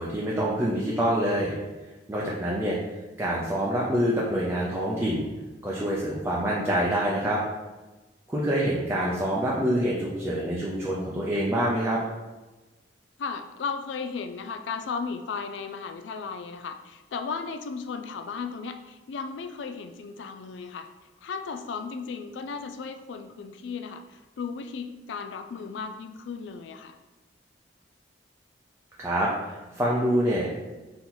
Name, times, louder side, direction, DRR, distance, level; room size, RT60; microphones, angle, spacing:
voice 1, 0.0-1.5 2.1-2.8 3.2-5.3 5.6-7.4 8.3-12.0 29.0-30.5, equal, 15° right, -6 dB, 0.5 m, -26 dB
voice 2, 13.2-20.9 21.2-27.0, left 5 dB, 85° left, 8 dB, 0.4 m, -35 dB
4.2 x 2.9 x 3.8 m, 1.2 s
head